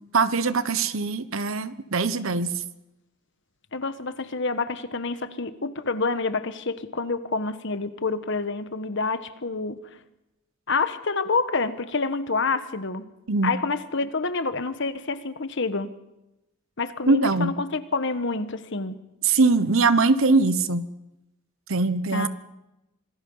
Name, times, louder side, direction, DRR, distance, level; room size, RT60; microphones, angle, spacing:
voice 1, 0.1-2.6 13.3-13.5 17.1-17.5 19.2-20.9 21.7-22.3, right 3 dB, 70° right, 14 dB, 1.0 m, -22 dB
voice 2, 3.7-9.8 10.7-13.1 13.4-15.9 16.8-19.0 22.1-22.3, left 3 dB, 55° left, 11 dB, 1.3 m, -28 dB
26.0 x 19.5 x 5.6 m, 0.93 s
head